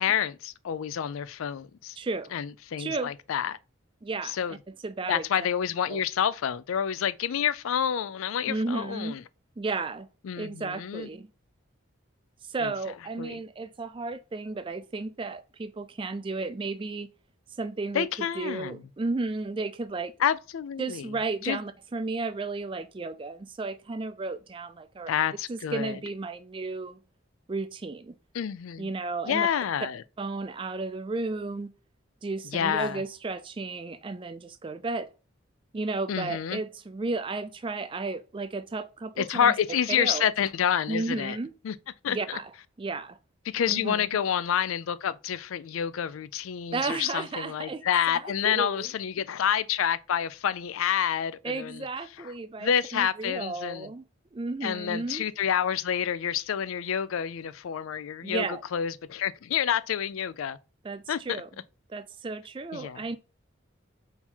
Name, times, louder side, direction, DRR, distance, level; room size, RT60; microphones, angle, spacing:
voice 1, 0.0-2.0 2.3-3.6 4.2-4.6 5.1-9.2 10.2-11.1 12.6-12.7 13.2-13.4 17.9-18.8 20.2-21.1 21.4-21.6 25.1-26.0 28.3-28.9 29.3-30.0 32.5-33.0 36.1-36.6 39.2-41.4 41.6-41.7 42.0-42.4 43.5-51.9 52.6-53.9 54.6-60.6 61.1-61.2 62.7-63.0, left 8 dB, 85° left, 0.4 m, -28 dB
voice 2, 2.0-2.3 2.8-3.1 4.0-4.4 4.7-5.3 5.9-6.0 8.5-9.2 9.6-10.1 10.4-11.3 12.4-17.1 17.6-20.1 20.8-25.1 25.5-27.0 27.5-28.2 28.8-29.5 30.2-31.7 32.2-35.1 35.7-39.5 40.0-40.3 40.9-41.5 42.1-42.5 42.8-43.2 43.7-44.0 46.7-48.9 51.4-54.0 54.3-55.3 58.2-58.6 60.8-61.5 61.9-63.2, right 3 dB, 25° right, 0.3 m, -33 dB
3.7 x 2.8 x 4.4 m
head